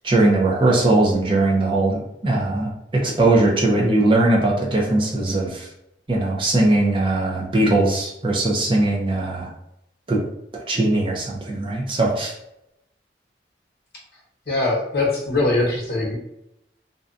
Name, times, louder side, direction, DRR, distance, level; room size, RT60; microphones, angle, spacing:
voice 1, 0.0-5.7 6.1-9.5 10.1-10.2 10.7-12.3, right 2 dB, 30° right, -2 dB, 0.4 m, -20 dB
voice 2, 14.5-16.2, left 2 dB, 55° left, -3 dB, 0.8 m, -22 dB
2.6 x 2.2 x 2.5 m, 0.82 s
head